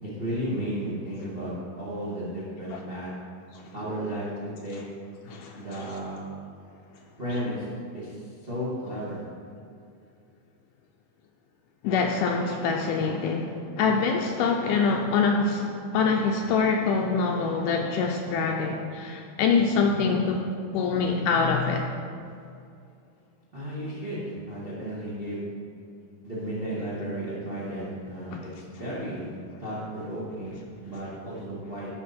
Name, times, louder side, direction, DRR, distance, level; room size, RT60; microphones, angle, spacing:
voice 1, 0.0-3.1 3.7-4.8 5.2-6.2 7.2-7.7 7.9-8.2 8.4-9.2 23.5-25.4 26.2-31.9, equal, 80° right, -8 dB, 0.5 m, -34 dB
voice 2, 5.3-5.9 7.3-7.4 11.8-15.7 15.9-20.5 20.7-21.9 28.3-28.4, left 5 dB, 80° left, 2 dB, 2.0 m, -25 dB
11.5 x 5.5 x 4.2 m, 2.4 s
omnidirectional pair, 4.0 m